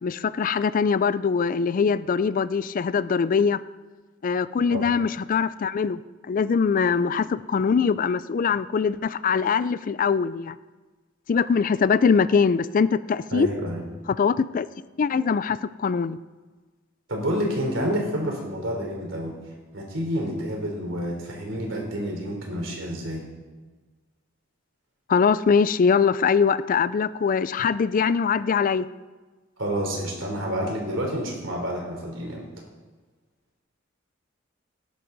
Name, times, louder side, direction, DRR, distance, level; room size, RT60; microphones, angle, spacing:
voice 1, 0.0-3.6 4.2-6.0 6.3-10.6 11.3-13.5 14.1-14.7 15.0-16.2 25.1-28.8, left 5 dB, 45° left, 16 dB, 0.4 m, -22 dB
voice 2, 13.3-13.8 17.1-19.4 19.7-23.3 29.6-32.5, equal, 75° right, 1 dB, 3.5 m, -29 dB
18.0 x 10.5 x 4.0 m, 1.3 s
head